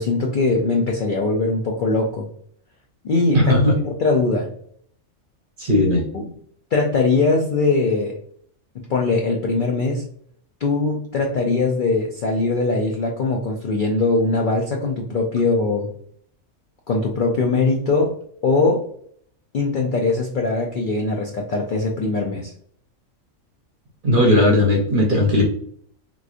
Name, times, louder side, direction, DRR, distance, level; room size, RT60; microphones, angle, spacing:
voice 1, 0.0-2.3 3.0-3.6 3.8-4.5 6.1-6.2 6.7-8.1 8.7-10.0 10.6-15.9 16.9-18.1 18.4-18.8 19.5-22.5, left 3 dB, 65° left, 0 dB, 0.5 m, -21 dB
voice 2, 3.3-3.8 5.6-6.0 24.0-25.4, left 1 dB, 45° right, 0 dB, 0.8 m, -17 dB
3.7 x 3.0 x 2.4 m, 0.63 s
omnidirectional pair, 1.4 m